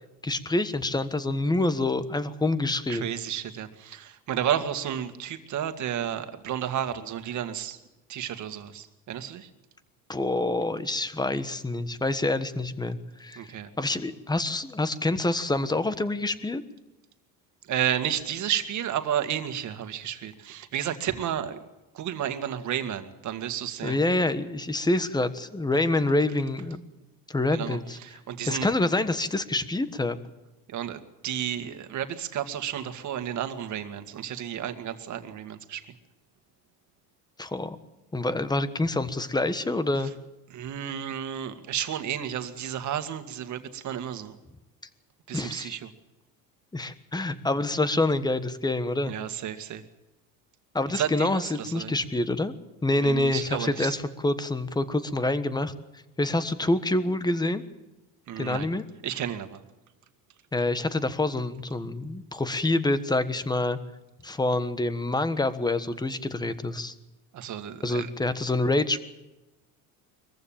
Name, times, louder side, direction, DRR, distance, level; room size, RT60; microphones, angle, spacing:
voice 1, 0.2-3.1 10.1-16.6 23.8-26.8 27.3-28.0 28.5-30.2 37.4-37.8 38.1-40.1 45.3-45.8 46.7-49.1 50.7-52.5 52.8-55.7 56.2-57.6 58.4-58.8 60.5-63.8 64.2-66.9 67.8-69.0, left 2 dB, 10° left, 12 dB, 1.3 m, -27 dB
voice 2, 2.9-7.8 8.1-9.5 13.4-13.7 17.7-21.6 21.9-24.0 27.5-28.7 30.7-35.9 40.5-44.4 45.3-45.9 49.0-49.8 50.9-52.0 53.0-53.9 58.3-58.7 59.0-59.6 67.3-68.1, right 10 dB, 50° right, 9 dB, 2.0 m, -32 dB
22.5 x 15.0 x 8.8 m, 1.1 s
cardioid pair, 115°, 38 cm